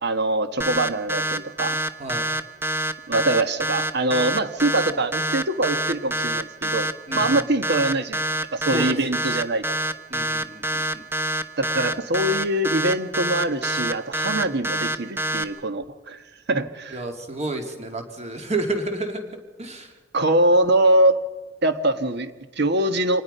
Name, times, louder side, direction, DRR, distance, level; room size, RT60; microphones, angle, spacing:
voice 1, 0.0-1.8 3.1-6.9 7.1-8.2 8.5-9.6 11.6-16.2 16.5-17.0 20.1-21.3 21.6-23.2, right 1 dB, 60° right, 11 dB, 1.4 m, -23 dB
sound 1, 0.6-15.4, right 1 dB, 10° right, 0.9 m, -26 dB
voice 2, 7.1-7.4 8.7-9.3 10.1-11.0 16.9-19.2 19.6-19.9, right 2 dB, 35° right, 4 dB, 3.0 m, -30 dB
26.0 x 19.5 x 5.6 m, 1.2 s
head